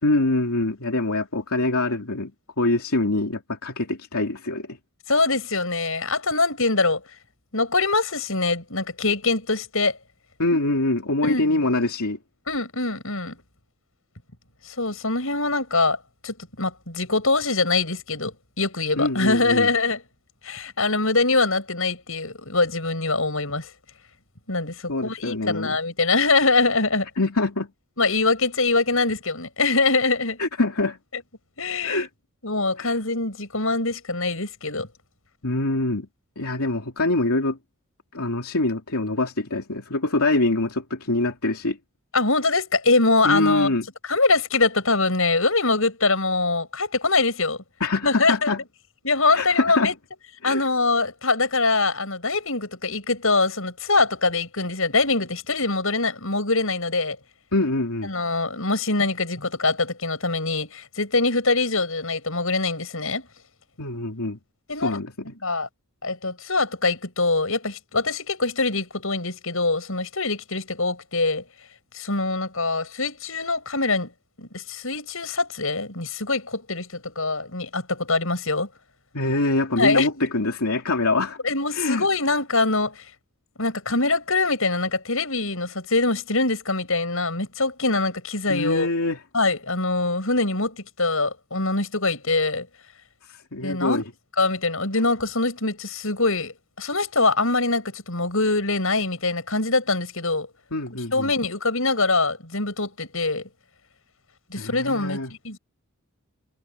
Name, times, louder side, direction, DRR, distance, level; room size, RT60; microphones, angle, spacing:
voice 1, 0.0-2.3 2.6-4.8 10.4-12.2 19.0-19.7 24.9-25.8 27.2-27.7 30.4-31.0 31.8-32.1 32.8-33.0 35.4-36.1 36.4-37.6 38.1-41.8 43.2-43.9 47.8-48.6 49.3-49.9 50.4-50.6 57.5-58.1 63.8-64.4 64.8-65.3 79.1-81.4 81.7-82.1 88.5-89.2 93.3-94.0 100.7-101.3 104.6-105.3, left 2 dB, 80° left, 2.7 m, -24 dB
voice 2, 5.1-7.0 7.5-10.0 11.2-11.5 12.5-13.4 14.6-16.0 16.2-20.0 20.4-23.7 24.5-27.1 28.0-30.4 31.6-32.1 32.4-34.9 42.1-43.7 44.0-47.6 48.0-48.5 49.0-49.9 50.4-57.2 58.0-63.2 64.7-65.0 65.4-65.7 66.0-71.4 71.9-74.1 74.4-78.7 79.8-80.3 81.4-83.1 83.6-88.9 89.3-92.7 93.6-94.0 94.4-100.5 101.1-103.5 104.5-105.6, left 3 dB, 65° left, 7.8 m, -23 dB
head